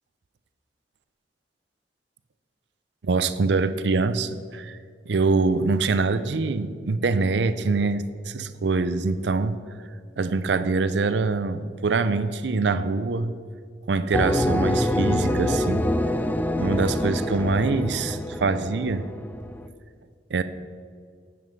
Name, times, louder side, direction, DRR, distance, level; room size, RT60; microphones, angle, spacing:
voice 1, 3.0-4.8 5.1-9.6 10.2-13.3 13.9-15.9 16.6-19.0 20.3-20.4, right 3 dB, 70° right, 13 dB, 0.5 m, -24 dB
sound 1, 14.1-19.7, left 1 dB, 10° left, 0.3 m, -25 dB
9.3 x 7.7 x 5.3 m, 2.1 s
head